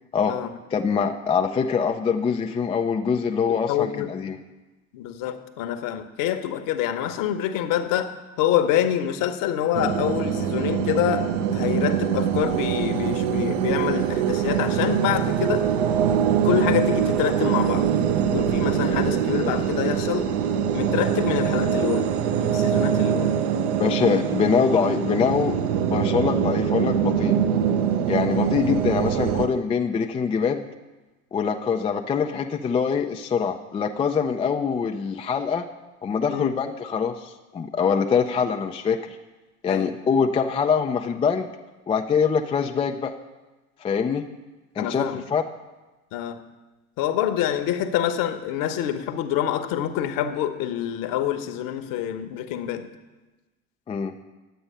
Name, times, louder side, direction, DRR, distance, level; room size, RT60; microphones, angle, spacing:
voice 1, 0.7-4.4 23.8-25.5 25.8-27.4 28.1-30.7 31.3-35.7 36.0-39.0 39.6-41.5 41.9-43.1 43.8-44.2 44.8-45.4 53.9-54.1, left 6 dB, 15° left, 4 dB, 0.4 m, -24 dB
voice 2, 3.7-4.1 4.9-15.7 16.4-17.9 18.3-20.3 20.7-23.4 36.3-36.6 39.7-40.0 44.8-45.2 46.1-46.4 47.0-52.9, left 11 dB, 50° left, 8 dB, 1.0 m, -26 dB
sound 1, 9.7-29.5, right 8 dB, 60° right, 0.8 m, -23 dB
10.5 x 7.8 x 5.6 m, 1.2 s
hypercardioid pair, 75°, 43 cm